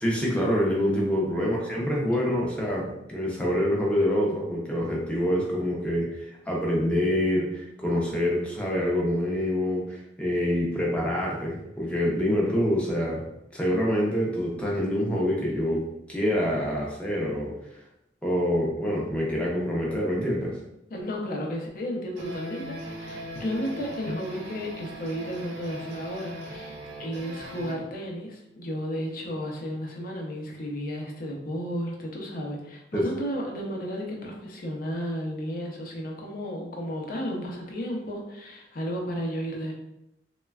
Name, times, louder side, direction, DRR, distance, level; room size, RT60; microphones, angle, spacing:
voice 1, 0.0-13.3 13.5-15.8 16.1-17.5 18.2-20.5 32.9-33.1, equal, 5° left, -3 dB, 0.5 m, -26 dB
voice 2, 20.9-39.7, equal, 55° left, 0 dB, 0.6 m, -33 dB
sound 1, 22.2-27.7, right 1 dB, 80° right, 0.6 m, -39 dB
3.1 x 2.2 x 2.3 m, 0.85 s
head